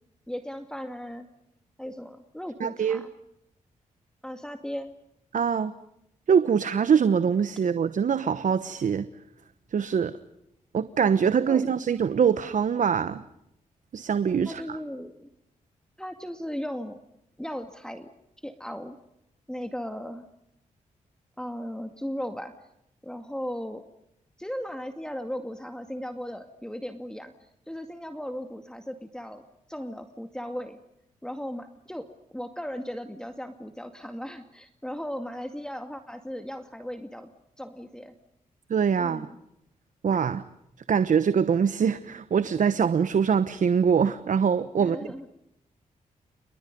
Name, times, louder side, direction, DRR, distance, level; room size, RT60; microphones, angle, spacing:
voice 1, 0.3-1.3 1.8-3.1 4.2-4.9 11.5-11.6 14.5-15.3 16.0-17.0 17.4-18.1 18.4-19.0 19.5-20.3 21.4-22.5 23.0-23.8 24.4-29.4 29.7-30.8 31.2-37.3 37.6-38.1 39.0-39.4 44.8-45.3, equal, 5° left, 6 dB, 2.2 m, -37 dB
voice 2, 2.6-3.0 5.3-5.7 6.3-9.1 9.7-10.2 10.7-13.2 13.9-14.8 38.7-39.3 40.0-40.4 40.9-45.0, right 7 dB, 60° right, 13 dB, 1.1 m, -23 dB
29.5 x 28.5 x 5.4 m, 0.80 s
supercardioid pair, 50°, 15 cm